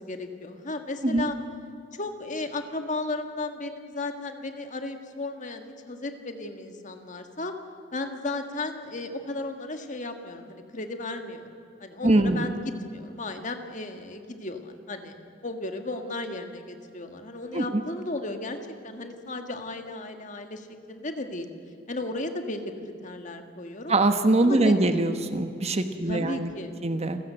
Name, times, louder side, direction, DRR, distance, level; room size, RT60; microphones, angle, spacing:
voice 1, 0.0-1.4 1.9-7.5 7.9-11.5 11.8-15.2 15.4-18.6 18.8-21.5 21.9-23.9 24.4-24.9 26.1-26.8, left 2 dB, 40° left, 6 dB, 1.8 m, -35 dB
voice 2, 12.0-12.5 17.5-17.8 23.9-26.5 26.8-27.2, right 2 dB, 35° right, 8 dB, 1.1 m, -23 dB
28.0 x 15.0 x 8.0 m, 2.5 s
head